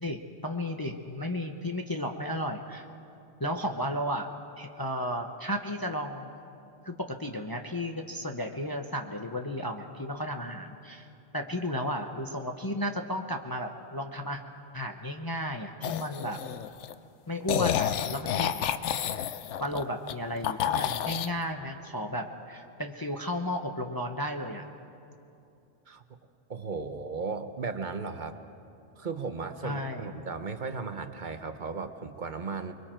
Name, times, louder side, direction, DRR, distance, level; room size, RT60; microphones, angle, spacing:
voice 1, 0.0-2.8 3.4-4.3 4.6-6.3 6.8-11.1 11.3-14.4 14.7-16.4 17.3-18.7 19.6-24.7 29.6-30.1, equal, 20° left, 3 dB, 0.8 m, -34 dB
sound 1, 15.8-16.9 17.5-20.1 20.4-21.3, left 9 dB, 80° left, 1.0 m, -30 dB
voice 2, 25.9-26.2 26.5-28.4 29.0-32.7, right 4 dB, 45° right, 8 dB, 1.0 m, -36 dB
29.5 x 22.0 x 4.5 m, 2.7 s
omnidirectional pair, 1.2 m